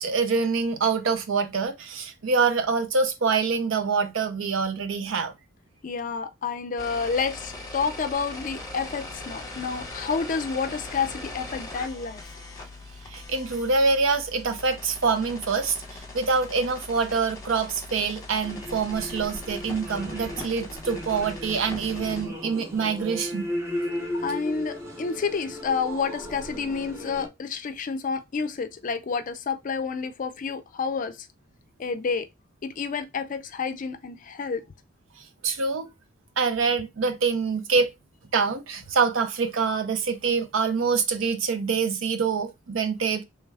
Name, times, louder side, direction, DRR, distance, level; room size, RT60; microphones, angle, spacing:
voice 1, 0.0-5.3 13.1-23.5 35.4-35.9 36.4-37.9 38.3-43.2, right 5 dB, 75° right, 0.6 m, -25 dB
voice 2, 5.8-12.2 24.2-31.3 31.8-32.3 32.6-34.6, left 5 dB, 40° left, 0.4 m, -29 dB
sound 1, 6.8-22.3, left 2 dB, 15° left, 1.0 m, -40 dB
sound 2, 18.4-27.3, left 1 dB, 15° right, 0.6 m, -35 dB
3.2 x 2.3 x 3.3 m
head